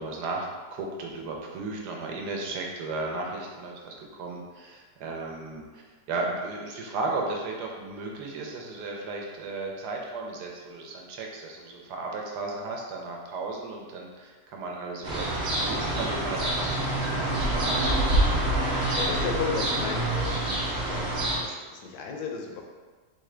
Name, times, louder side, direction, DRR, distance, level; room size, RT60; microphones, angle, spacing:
voice 1, 0.0-15.3 15.6-17.8, right 3 dB, 75° right, 0 dB, 1.3 m, -35 dB
sound 1, 15.0-21.4, right 1 dB, 50° right, 1.0 m, -26 dB
voice 2, 18.2-21.1 21.4-22.6, left 5 dB, 70° left, 1 dB, 1.1 m, -35 dB
3.7 x 3.7 x 3.2 m, 1.4 s
omnidirectional pair, 1.8 m